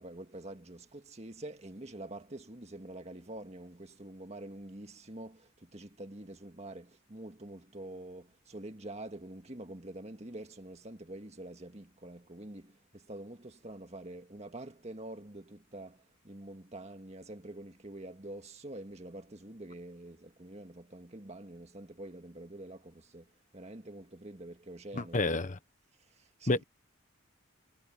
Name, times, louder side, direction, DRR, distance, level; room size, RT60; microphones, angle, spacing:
voice 1, 0.0-25.5 26.1-26.6, right 1 dB, 30° right, 1.8 m, -46 dB
voice 2, 24.9-25.6 26.5-26.6, left 2 dB, 35° left, 1.0 m, -29 dB
head